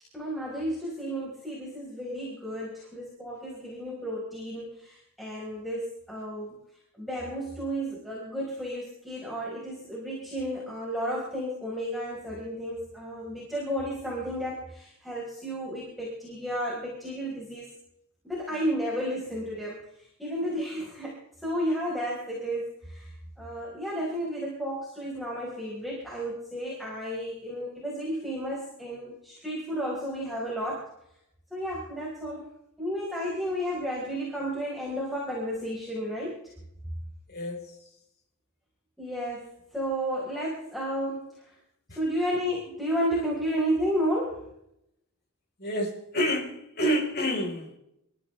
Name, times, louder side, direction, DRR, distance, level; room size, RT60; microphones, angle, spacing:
voice 1, 0.1-6.6 7.0-17.7 18.2-23.1 23.4-30.9 31.5-32.4 32.8-36.4 39.0-39.5 39.7-41.4 41.9-44.4, equal, ahead, -6 dB, 4.5 m, -32 dB
voice 2, 45.6-47.8, equal, 45° left, 1 dB, 4.5 m, -28 dB
27.5 x 14.0 x 3.3 m, 0.79 s
head